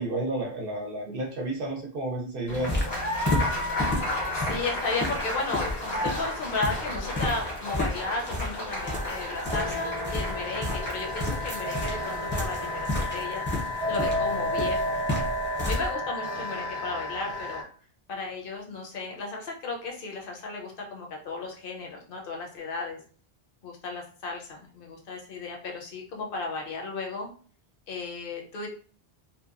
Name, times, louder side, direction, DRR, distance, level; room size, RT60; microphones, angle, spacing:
voice 1, 0.0-2.7, right 1 dB, 65° right, -1 dB, 0.7 m, -31 dB
Applause, 2.5-12.9, left 1 dB, 85° left, 1.4 m, -33 dB
sound 1, 2.5-15.9, left 1 dB, 15° left, 0.5 m, -33 dB
voice 2, 4.3-15.0 15.6-17.6 18.1-23.0 23.6-27.3 27.9-28.7, left 3 dB, 60° left, 1 dB, 0.8 m, -34 dB
sound 2, 8.8-17.6, left 1 dB, 40° right, 0.9 m, -32 dB
2.8 x 2.1 x 2.4 m, 0.42 s
omnidirectional pair, 1.1 m